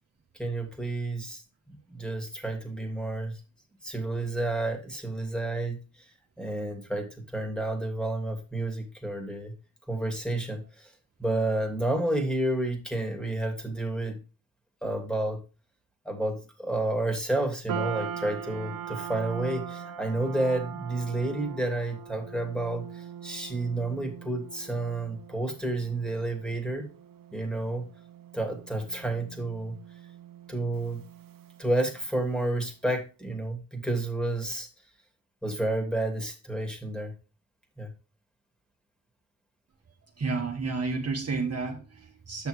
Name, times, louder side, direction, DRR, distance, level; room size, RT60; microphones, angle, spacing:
voice 1, 0.4-1.4 1.7-3.4 3.8-5.8 6.4-9.5 9.9-10.6 11.2-14.2 14.8-15.4 16.0-26.9 27.3-27.8 28.3-29.8 30.5-31.0 31.6-34.7 35.4-37.1 37.8-37.9, right 2 dB, ahead, 1 dB, 2.7 m, -30 dB
sound 1, 17.7-32.1, right 8 dB, 70° right, 1.0 m, -41 dB
voice 2, 40.2-42.5, right 4 dB, 45° right, 1 dB, 1.5 m, -31 dB
8.5 x 6.2 x 3.3 m, 0.31 s
cardioid pair, 75°, 35 cm